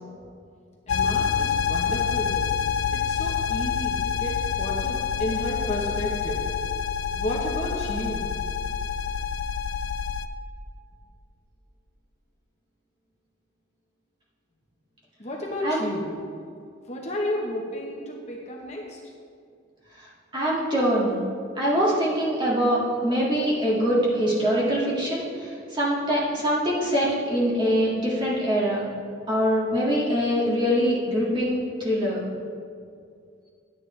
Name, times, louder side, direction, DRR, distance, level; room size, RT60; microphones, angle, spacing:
sound 1, 0.9-10.3, left 7 dB, 85° left, 0.4 m, -27 dB
voice 1, 0.9-2.5 3.1-6.5 7.1-8.3 15.2-16.1 16.5-16.6 16.9-19.0, left 1 dB, 35° left, -2 dB, 1.0 m, -32 dB
voice 2, 20.0-21.2 21.6-28.9 29.3-32.2, equal, 25° right, -7 dB, 2.0 m, -24 dB
10.5 x 9.8 x 3.3 m, 2.3 s
head